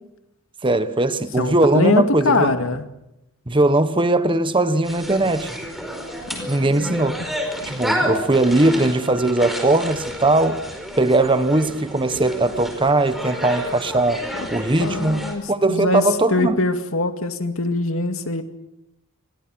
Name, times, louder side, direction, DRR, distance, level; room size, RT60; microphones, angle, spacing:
voice 1, 0.6-2.5 3.5-5.5 6.5-7.2 7.6-10.6 11.0-14.2 14.5-16.6, right 2 dB, 25° right, 1.2 m, -19 dB
voice 2, 1.4-2.9 6.3-6.9 14.8-15.4 15.7-16.0 16.3-18.4, left 2 dB, 70° left, 2.3 m, -22 dB
sound 1, 4.8-15.3, equal, ahead, 4.8 m, -30 dB
29.5 x 22.0 x 6.3 m
head